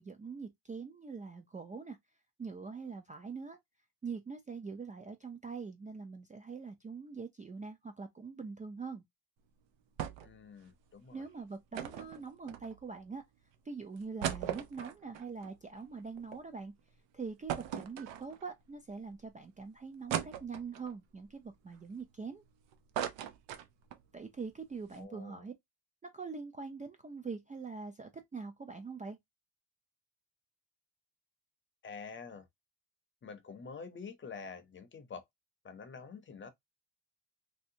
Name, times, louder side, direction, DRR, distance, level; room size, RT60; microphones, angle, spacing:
voice 1, 0.0-2.0 2.4-3.6 4.0-9.0 11.1-13.2 13.7-16.7 17.1-22.4 24.1-25.5 26.0-29.2, right 5 dB, 20° right, 0.3 m, -43 dB
sound 1, 10.0-10.4 10.7-10.8 11.7-13.0 13.5-13.6 14.0-16.4 16.8-16.9 17.5-18.6 19.1-19.2 20.1-20.9 21.5-22.5 22.7-24.1 24.4-24.5 24.7-25.0, right 10 dB, 85° right, 0.7 m, -39 dB
voice 2, 10.2-11.2 24.9-25.4 31.8-32.5 33.2-35.2 35.6-36.5, left 5 dB, 30° left, 0.6 m, -47 dB
3.1 x 2.8 x 2.6 m
cardioid pair, 140°, 42 cm